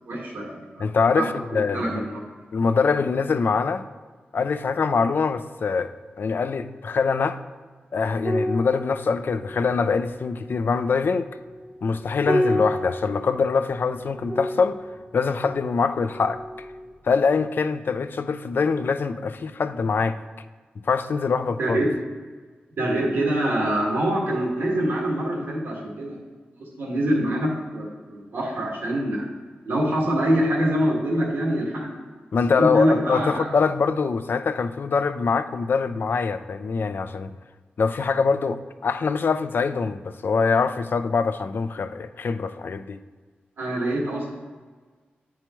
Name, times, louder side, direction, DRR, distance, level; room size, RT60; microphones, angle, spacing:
voice 1, 0.1-0.9 1.1-2.2 21.6-21.9 22.8-26.2 26.6-29.3 29.6-32.0 32.6-33.5 43.6-44.3, right 1 dB, 85° right, -3 dB, 1.6 m, -25 dB
voice 2, 0.8-2.0 2.5-3.8 4.3-5.9 6.2-7.4 7.9-11.3 11.8-14.8 15.1-16.4 17.0-20.1 20.9-21.8 32.3-37.3 37.8-43.0, left 5 dB, 65° left, 10 dB, 0.4 m, -23 dB
sound 1, 8.2-16.9 17.2-17.4, equal, 35° right, 0.8 m, -31 dB
8.8 x 4.7 x 3.0 m, 1.4 s
cardioid pair, 60°, 4 cm